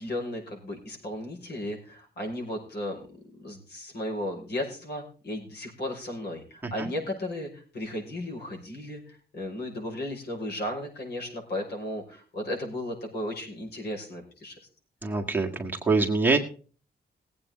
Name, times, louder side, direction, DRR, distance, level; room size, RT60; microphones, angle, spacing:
voice 1, 0.0-3.0 3.4-14.6, left 1 dB, 70° left, 1 dB, 5.8 m, -35 dB
voice 2, 15.0-16.4, right 3 dB, 10° right, -1 dB, 1.7 m, -25 dB
19.5 x 8.6 x 3.8 m, 0.39 s
wide cardioid pair, 175°, 17 cm